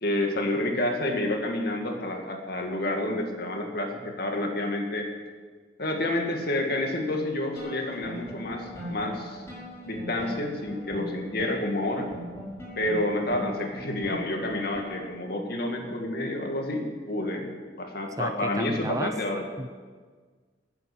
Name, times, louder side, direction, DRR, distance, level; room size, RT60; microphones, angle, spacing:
voice 1, 0.0-5.1 5.8-9.4 9.8-12.1 12.8-17.5 17.8-19.4, left 1 dB, 55° left, 3 dB, 2.2 m, -29 dB
sound 1, 7.6-15.2, equal, 15° left, 6.0 m, -40 dB
voice 2, 18.2-19.2 19.6-19.7, right 2 dB, 15° right, 9 dB, 0.5 m, -32 dB
14.0 x 9.7 x 8.7 m, 1.5 s
head